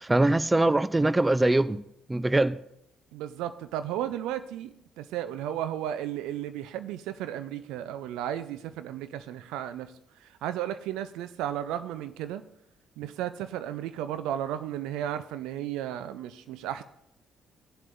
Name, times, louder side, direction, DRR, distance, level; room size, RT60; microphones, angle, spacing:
voice 1, 0.0-1.8 2.1-2.6, right 2 dB, 15° right, 0.4 m, -23 dB
voice 2, 3.1-9.9 10.2-12.4 13.0-16.8, right 11 dB, 70° right, 0.5 m, -34 dB
18.0 x 7.5 x 2.6 m
hypercardioid pair, 45°, 0 cm